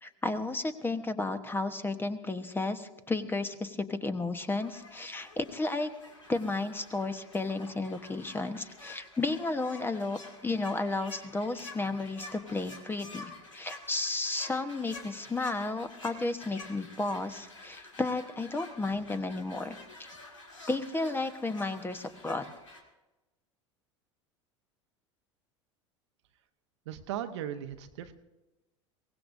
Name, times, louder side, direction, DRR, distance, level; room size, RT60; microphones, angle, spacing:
voice 1, 0.0-5.9 6.3-19.8 20.7-22.5, left 3 dB, 15° left, 10 dB, 1.1 m, -33 dB
sound 1, 4.6-22.8, left 2 dB, 85° left, 2.2 m, -49 dB
voice 2, 26.9-28.1, right 10 dB, 65° right, 8 dB, 1.0 m, -37 dB
23.0 x 17.5 x 2.6 m, 1.1 s
figure-of-eight pair, 80°, 16 cm